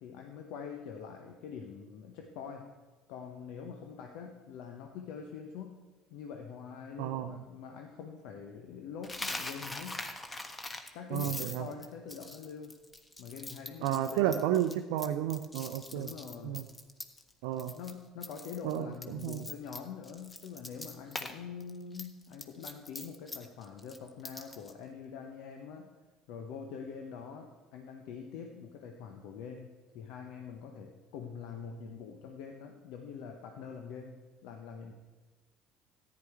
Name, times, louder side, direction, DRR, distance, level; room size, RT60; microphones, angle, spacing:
voice 1, 0.0-2.7 3.1-5.8 6.1-10.0 10.9-12.7 13.2-14.4 15.9-16.7 17.7-25.9 26.3-29.7 29.9-34.9, left 6 dB, 65° left, 4 dB, 0.9 m, -44 dB
voice 2, 7.0-7.4 11.1-11.7 13.8-16.1 16.4-16.6 17.4-17.8 18.6-19.5, right 12 dB, 70° right, 6 dB, 0.5 m, -32 dB
Coin (dropping), 9.0-17.3 17.6-17.9 18.2-21.3 21.6-24.7, left 2 dB, 20° left, 1.2 m, -42 dB
14.0 x 9.7 x 4.5 m, 1.3 s
hypercardioid pair, 65°, 0 cm